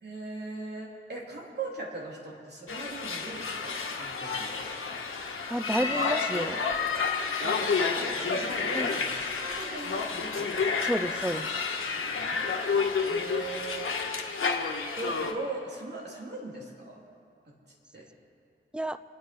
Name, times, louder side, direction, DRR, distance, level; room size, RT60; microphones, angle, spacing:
voice 1, 0.0-5.0 7.4-9.3 9.6-10.6 12.1-12.5 13.1-13.9 15.0-17.0 17.9-18.1, right 3 dB, 55° right, -3 dB, 3.6 m, -39 dB
sound 1, 2.7-15.3, left 5 dB, 90° left, 1.4 m, -30 dB
voice 2, 5.5-6.6 8.7-8.9 10.8-11.5 18.7-19.0, equal, 5° right, 12 dB, 0.6 m, -30 dB
27.0 x 9.5 x 4.6 m, 2.3 s
wide cardioid pair, 80°, 21 cm